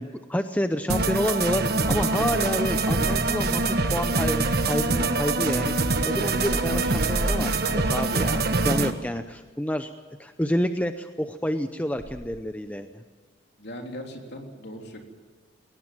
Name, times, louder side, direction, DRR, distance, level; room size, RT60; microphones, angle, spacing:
voice 1, 0.0-9.9 10.2-13.0, equal, 5° left, 8 dB, 0.7 m, -29 dB
sound 1, 0.9-8.9, right 3 dB, 50° right, 1.4 m, -24 dB
sound 2, 1.8-8.1 11.9-12.2, right 1 dB, 90° right, 5.8 m, -36 dB
voice 2, 13.6-15.0, equal, 55° left, 2 dB, 3.6 m, -39 dB
21.5 x 18.5 x 7.6 m, 1.4 s
head